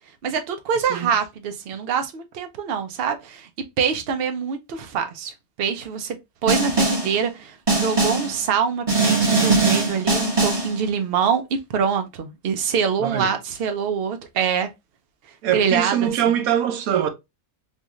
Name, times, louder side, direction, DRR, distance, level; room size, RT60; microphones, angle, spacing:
voice 1, 0.2-3.5 3.8-5.3 5.6-6.2 6.4-14.7 15.5-16.1, right 7 dB, 55° right, 0.7 m, -24 dB
voice 2, 0.8-1.1 13.0-13.3 15.4-17.1, right 10 dB, 80° right, 1.2 m, -23 dB
Snare drum, 6.5-7.2 7.7-8.4 8.9-10.8, right 3 dB, 25° right, 1.3 m, -20 dB
3.7 x 2.5 x 2.9 m
omnidirectional pair, 1.5 m